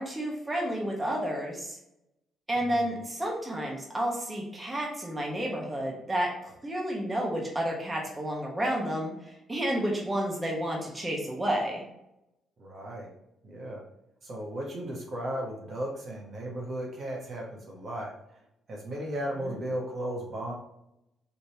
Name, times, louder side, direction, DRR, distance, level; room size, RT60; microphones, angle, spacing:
voice 1, 0.0-1.8 2.5-11.8 19.4-19.6, right 1 dB, 20° right, -2 dB, 1.3 m, -31 dB
voice 2, 2.6-2.9 12.6-13.1 13.4-13.8 14.2-18.1 18.7-20.5, right 1 dB, 50° right, -2 dB, 1.2 m, -35 dB
5.1 x 3.3 x 2.9 m, 0.85 s
cardioid pair, 90°, 0 cm